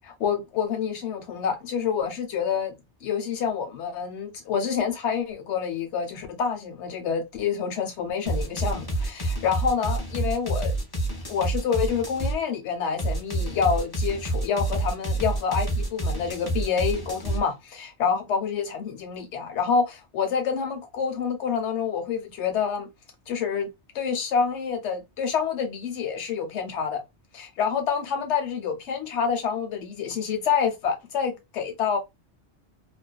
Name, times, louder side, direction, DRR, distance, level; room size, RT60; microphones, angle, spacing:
voice 1, 0.0-2.7 3.0-10.7 11.3-22.9 23.3-23.7 23.9-27.0 27.3-32.0, left 6 dB, 90° left, 1.0 m, -27 dB
sound 1, 8.3-12.4 13.0-17.4, right 2 dB, 25° left, 0.7 m, -28 dB
2.5 x 2.1 x 2.2 m
omnidirectional pair, 1.1 m